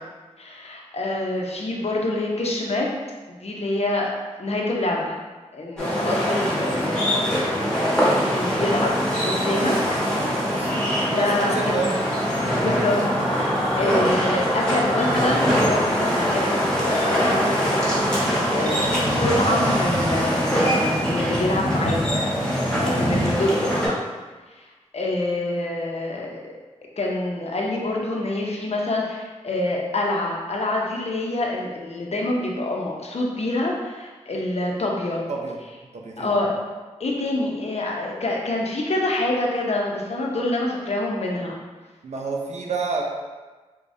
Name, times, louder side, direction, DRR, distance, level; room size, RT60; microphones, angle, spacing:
voice 1, 0.4-2.9 3.3-4.1 4.4-5.2 5.5-9.8 11.0-11.9 12.6-13.0 13.3-22.2 22.8-23.7 24.6-24.7 24.9-26.4 27.0-35.2 36.2-36.5 37.0-41.6, left 2 dB, 55° left, -1 dB, 0.8 m, -26 dB
sound 1, 5.8-23.9, equal, 5° left, 1.3 m, -23 dB
sound 2, 6.1-12.2 15.5-15.6 15.8-19.0, left 1 dB, 15° right, 0.8 m, -41 dB
voice 2, 11.1-11.9 12.6-12.8 35.3-35.6 35.9-36.5 42.0-43.0, right 4 dB, 65° right, 0 dB, 0.6 m, -29 dB
4.8 x 2.3 x 2.7 m, 1.3 s
cardioid pair, 45°, 13 cm